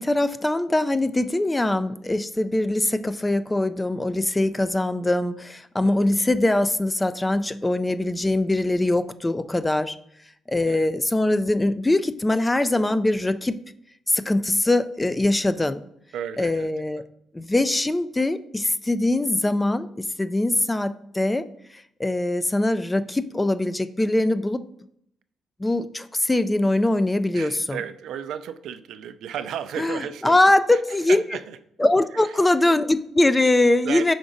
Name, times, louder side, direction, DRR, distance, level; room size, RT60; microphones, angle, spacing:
voice 1, 0.0-10.0 10.5-13.6 14.1-15.8 16.4-17.0 17.3-21.5 21.7-24.7 25.6-27.8 29.8-31.2 31.8-34.1, left 2 dB, 15° left, 13 dB, 0.3 m, -22 dB
voice 2, 5.8-6.1 10.7-10.9 16.1-16.7 27.3-30.4 30.7-30.8 31.1-31.6 32.1-32.4 33.8-34.1, right 9 dB, 80° right, 12 dB, 0.3 m, -34 dB
5.0 x 4.8 x 3.9 m, 0.72 s
cardioid pair, 90°, 0 cm